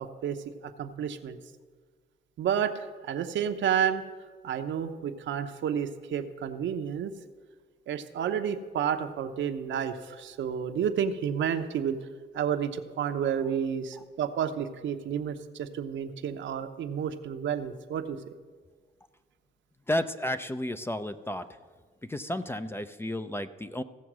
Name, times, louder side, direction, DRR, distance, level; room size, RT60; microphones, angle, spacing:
voice 1, 0.0-1.4 2.4-4.0 4.4-7.1 7.9-12.0 12.3-18.3, right 8 dB, 70° right, 7 dB, 0.9 m, -30 dB
voice 2, 19.9-21.5 22.0-23.8, left 1 dB, 10° left, 11 dB, 0.5 m, -32 dB
16.0 x 7.0 x 6.1 m, 1.5 s
cardioid pair, 90°, 20 cm